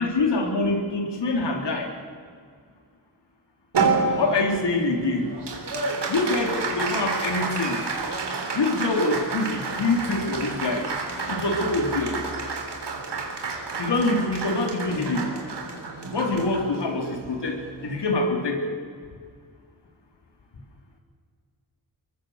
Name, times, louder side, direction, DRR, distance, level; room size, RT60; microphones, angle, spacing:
voice 1, 0.0-1.9 4.1-5.3 6.1-7.8 8.5-10.8 11.3-12.2 13.8-15.3 16.1-18.7, left 2 dB, 80° left, 3 dB, 4.0 m, -25 dB
Applause, 3.7-18.4, right 4 dB, 80° right, 3.6 m, -30 dB
23.5 x 22.5 x 6.7 m, 2.1 s
cardioid pair, 60°, 41 cm